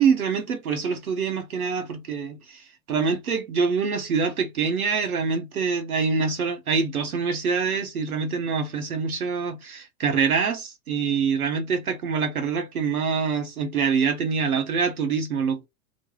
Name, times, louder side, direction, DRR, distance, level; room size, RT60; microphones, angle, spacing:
voice 1, 0.0-15.7, right 5 dB, 85° right, 0.9 m, -25 dB
2.3 x 2.2 x 3.1 m
hypercardioid pair, 105°, 42 cm